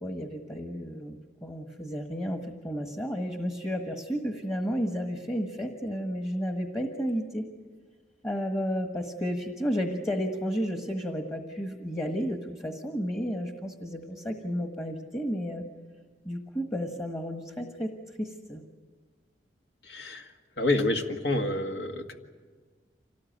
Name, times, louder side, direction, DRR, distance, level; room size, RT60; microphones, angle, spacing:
voice 1, 0.0-7.5 8.2-15.6 16.2-18.6, equal, 15° left, 4 dB, 1.4 m, -32 dB
voice 2, 19.8-20.3 20.6-22.1, left 2 dB, 75° left, 4 dB, 1.9 m, -28 dB
26.0 x 18.5 x 9.2 m, 1.5 s
head